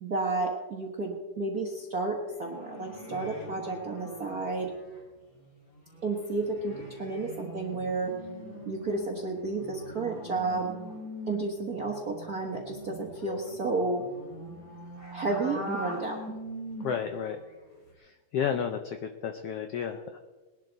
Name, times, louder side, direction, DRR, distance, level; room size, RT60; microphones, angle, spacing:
voice 1, 0.0-4.7 6.0-8.2 8.7-10.7 11.3-14.1 15.1-16.2, right 3 dB, 50° right, -1 dB, 1.1 m, -32 dB
sound 1, 2.2-5.0 5.4-5.5 5.7-17.2 17.5-17.9, equal, 25° left, 5.5 m, -43 dB
voice 2, 16.8-17.4 18.0-20.2, left 7 dB, 75° left, 6 dB, 1.4 m, -32 dB
20.5 x 11.5 x 4.0 m, 1.2 s
omnidirectional pair, 3.6 m